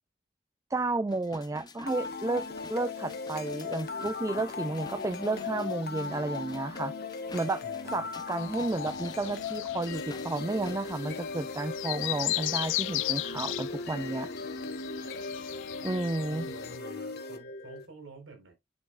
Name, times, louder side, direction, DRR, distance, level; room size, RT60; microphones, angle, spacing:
voice 1, 0.7-6.9 7.3-14.3 15.8-16.5, right 2 dB, 15° right, 0.4 m, -32 dB
sound 1, 1.1-11.0 11.5-11.6, left 3 dB, 20° left, 0.7 m, -50 dB
sound 2, 1.9-17.9, left 4 dB, 55° left, 1.4 m, -38 dB
voice 2, 7.6-8.1 16.2-18.5, right 2 dB, 85° right, 4.0 m, -49 dB
sound 3, 8.4-16.8, left 18 dB, 75° left, 0.3 m, -37 dB
9.7 x 5.7 x 2.4 m
head